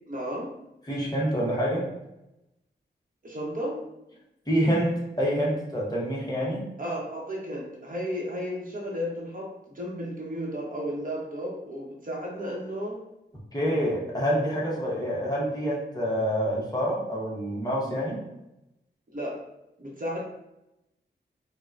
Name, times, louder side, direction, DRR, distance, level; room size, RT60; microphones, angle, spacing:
voice 1, 0.1-0.5 3.2-3.8 6.8-13.0 19.1-19.4 19.8-20.2, equal, 45° right, -2 dB, 0.9 m, -33 dB
voice 2, 0.9-1.9 4.5-6.6 13.5-18.2, equal, 20° left, -5 dB, 1.0 m, -27 dB
5.0 x 2.2 x 2.5 m, 0.89 s
wide cardioid pair, 90°, 19 cm